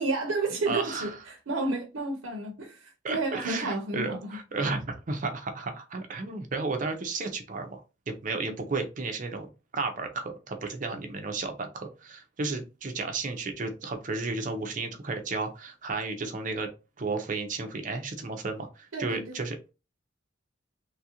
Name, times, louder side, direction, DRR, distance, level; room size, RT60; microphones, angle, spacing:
voice 1, 0.0-4.4 8.3-8.6 18.9-19.4, right 2 dB, 85° right, 0.7 m, -31 dB
voice 2, 0.7-1.1 3.0-7.8 8.1-16.7 17.0-19.6, right 3 dB, 40° right, 0.6 m, -33 dB
3.1 x 2.4 x 2.8 m
head